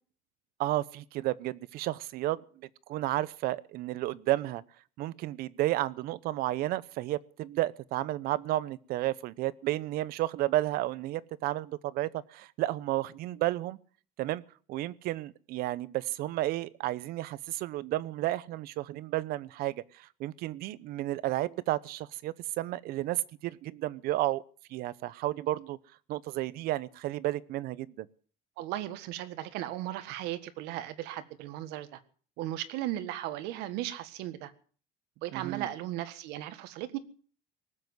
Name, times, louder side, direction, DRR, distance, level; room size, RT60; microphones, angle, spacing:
voice 1, 0.6-2.4 2.9-4.6 5.0-13.8 14.2-14.4 14.7-24.4 24.7-25.8 26.1-28.1 35.3-35.7, right 16 dB, 65° right, 20 dB, 0.8 m, -32 dB
voice 2, 28.6-32.0 32.4-34.5 35.2-37.0, right 14 dB, 80° right, 12 dB, 1.6 m, -36 dB
19.0 x 7.8 x 9.4 m, 0.43 s
cardioid pair, 160°, 17 cm